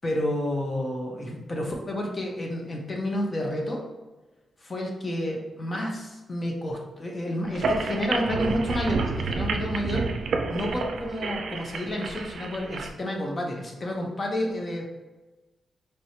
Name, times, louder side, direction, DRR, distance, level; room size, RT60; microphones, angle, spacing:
voice 1, 0.0-3.8 4.6-10.1 10.5-14.9, left 1 dB, 35° left, 0 dB, 0.9 m, -30 dB
sound 1, 7.5-12.9, right 4 dB, 75° right, 0.4 m, -30 dB
4.5 x 3.1 x 2.8 m, 1.1 s
cardioid pair, 100°, 0 cm